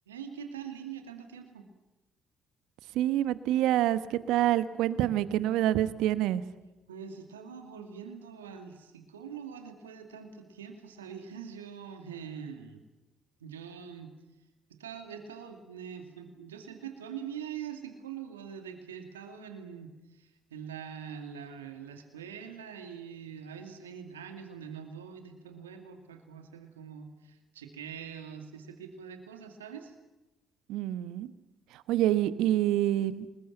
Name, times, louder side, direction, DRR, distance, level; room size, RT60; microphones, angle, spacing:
voice 1, 0.1-1.7 6.9-12.8 13.4-14.2 14.7-29.9, right 7 dB, 90° right, 5 dB, 2.3 m, -44 dB
voice 2, 2.9-6.4 30.7-31.3 31.7-33.3, right 13 dB, 70° right, 14 dB, 1.1 m, -27 dB
26.5 x 21.0 x 8.9 m, 1.0 s
hypercardioid pair, 50°, 0 cm